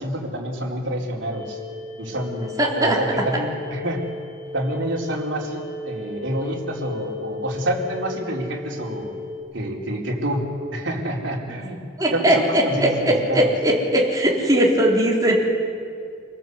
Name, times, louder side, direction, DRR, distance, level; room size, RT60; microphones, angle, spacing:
voice 1, 0.0-1.6 2.0-2.5 2.7-4.1 4.5-9.1 9.5-10.5 10.7-11.8 12.1-13.5, right 1 dB, 65° right, -2 dB, 4.3 m, -27 dB
sound 1, 1.3-9.4, left 3 dB, 90° left, 7.6 m, -36 dB
voice 2, 2.6-3.0 12.0-15.3, right 1 dB, 20° right, -3 dB, 4.1 m, -19 dB
27.0 x 18.5 x 8.2 m, 2.3 s
head